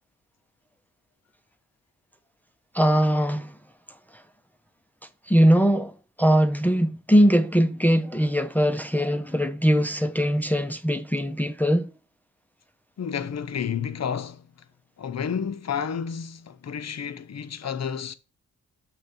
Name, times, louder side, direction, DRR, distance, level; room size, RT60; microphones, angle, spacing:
voice 1, 2.7-3.5 5.3-5.9 6.2-11.9, equal, 5° left, 0.6 m, -21 dB
voice 2, 13.0-14.5 15.0-18.1, left 7 dB, 50° left, 0.7 m, -30 dB
6.5 x 3.2 x 5.8 m
cardioid pair, 60°, 35 cm